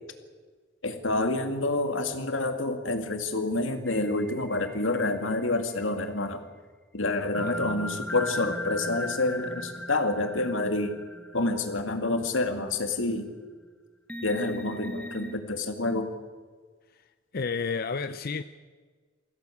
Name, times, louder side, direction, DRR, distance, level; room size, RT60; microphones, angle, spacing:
voice 1, 0.8-6.4 6.9-11.0 11.3-13.3 14.2-16.1, left 2 dB, 85° left, 2.3 m, -28 dB
sound 1, 3.9-5.8 7.3-12.2 12.7-12.8 14.1-15.4, left 1 dB, 5° left, 1.4 m, -38 dB
voice 2, 7.4-7.8 16.9-18.4, left 5 dB, 50° left, 0.6 m, -32 dB
22.0 x 16.5 x 8.5 m
head